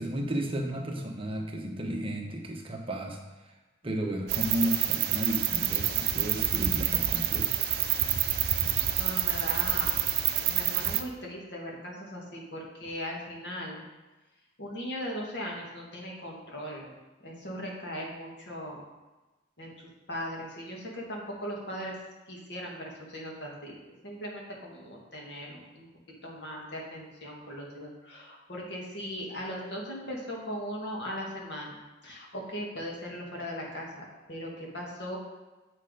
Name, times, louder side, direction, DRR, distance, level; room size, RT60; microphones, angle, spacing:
voice 1, 0.0-3.2 3.8-7.5, equal, 30° right, 1 dB, 1.0 m, -33 dB
sound 1, 4.3-11.0, right 11 dB, 55° right, 0.6 m, -27 dB
voice 2, 8.5-9.9 10.4-13.8 14.6-16.9 17.2-18.8 19.6-19.7 20.1-22.0 22.3-25.9 26.2-35.2, equal, 60° left, -2 dB, 2.0 m, -39 dB
7.5 x 6.5 x 4.9 m, 1.1 s
head